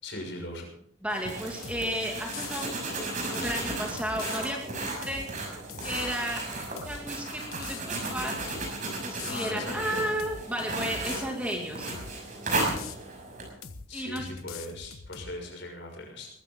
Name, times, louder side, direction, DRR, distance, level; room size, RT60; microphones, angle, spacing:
voice 1, 0.0-0.7 9.2-10.1 13.9-16.3, left 1 dB, 60° left, 1 dB, 6.2 m, -39 dB
voice 2, 1.0-2.7 3.2-5.3 5.8-6.4 6.8-8.4 9.0-12.0 13.9-14.3, equal, 5° right, 0 dB, 2.4 m, -33 dB
sound 1, 1.1-13.5, right 2 dB, 40° right, 6.0 m, -35 dB
sound 2, 1.6-1.9 2.3-2.7 3.3-4.4 5.0-5.3 5.7-6.2 6.8-7.0 7.5-8.7 9.2-9.6 10.2-10.5 10.8-11.2 11.9-12.2 12.5-13.0 13.6-13.9 14.2-15.3, left 6 dB, 90° left, 1.2 m, -42 dB
21.0 x 15.0 x 3.8 m, 0.67 s
head